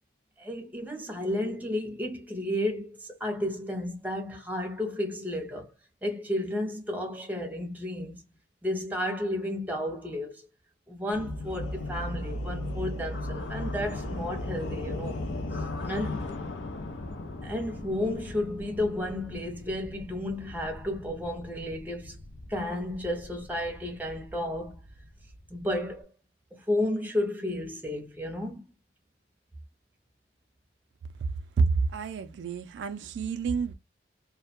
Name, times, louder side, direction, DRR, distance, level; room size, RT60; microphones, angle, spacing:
voice 1, 0.4-5.7 6.0-8.2 8.6-10.5 10.9-15.2 15.8-16.2 17.4-22.2 22.5-24.8 25.5-26.1 26.5-28.6, left 1 dB, 10° right, 0.6 m, -32 dB
sound 1, 11.1-26.0, left 2 dB, 85° left, 0.5 m, -37 dB
voice 2, 31.6-33.7, right 4 dB, 80° right, 0.3 m, -28 dB
2.2 x 2.1 x 2.8 m
head